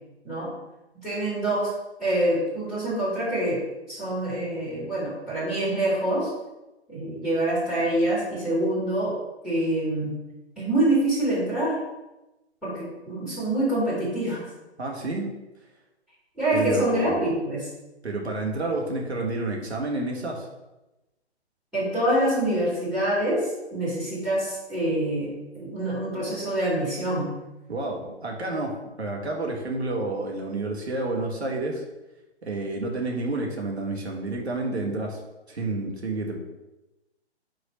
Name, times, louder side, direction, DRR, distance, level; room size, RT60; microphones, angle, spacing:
voice 1, 0.9-1.7 2.0-3.6 3.9-6.3 6.9-9.1 9.4-10.1 10.6-11.7 12.6-14.4 16.4-17.7 21.7-25.3 25.5-27.3, right 1 dB, ahead, -9 dB, 2.1 m, -25 dB
voice 2, 14.8-15.3 16.5-17.2 18.0-20.5 27.7-31.8 32.4-35.2 35.5-36.4, right 2 dB, 70° right, 0 dB, 1.7 m, -29 dB
5.3 x 4.1 x 5.3 m, 1.0 s
figure-of-eight pair, 130°, 34 cm